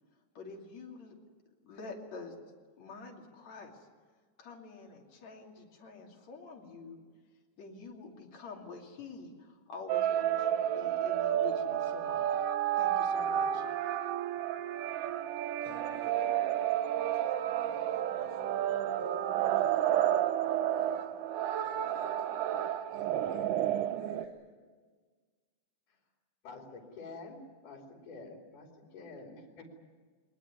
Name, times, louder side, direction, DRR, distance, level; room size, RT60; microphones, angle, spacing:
voice 1, 0.4-1.2 1.6-2.4 2.8-3.9 4.4-7.0 7.6-12.2 12.8-13.7, left 4 dB, 60° left, 1 dB, 3.9 m, -47 dB
sound 1, 9.9-24.3, right 11 dB, 85° right, 2.5 m, -31 dB
voice 2, 15.6-20.2 20.5-21.1 21.6-22.3 22.9-24.5, equal, 35° right, 2 dB, 4.6 m, -53 dB
voice 3, 26.4-29.8, left 3 dB, 80° left, 2 dB, 4.4 m, -48 dB
22.5 x 19.5 x 9.6 m, 1.5 s
omnidirectional pair, 3.6 m